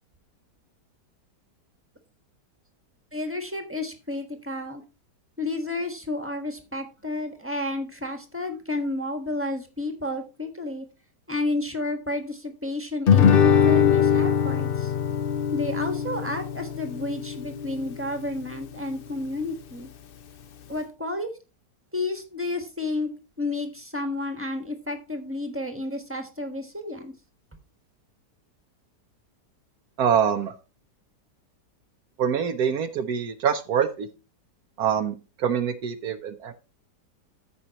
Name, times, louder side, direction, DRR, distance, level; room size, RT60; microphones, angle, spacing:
voice 1, 3.1-4.8 5.4-10.8 11.3-14.9 15.5-19.9 20.7-21.3 21.9-27.1, left 2 dB, 10° right, 5 dB, 1.2 m, -31 dB
Guitar, 13.1-18.1, left 8 dB, 80° left, 0.5 m, -22 dB
voice 2, 30.0-30.5 32.2-34.1 34.8-35.1 35.4-36.5, right 7 dB, 70° right, 8 dB, 1.2 m, -24 dB
14.0 x 5.4 x 2.9 m, 0.31 s
omnidirectional pair, 1.8 m